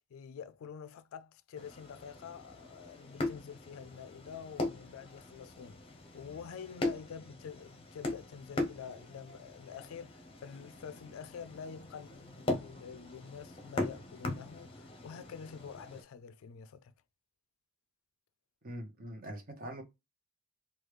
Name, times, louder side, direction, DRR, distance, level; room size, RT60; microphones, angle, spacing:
voice 1, 0.1-16.9, left 7 dB, 70° left, 0.3 m, -47 dB
sound 1, 1.5-16.0, left 2 dB, 25° left, 0.7 m, -40 dB
voice 2, 18.6-19.8, right 1 dB, 40° right, 0.8 m, -43 dB
3.1 x 2.3 x 3.2 m
head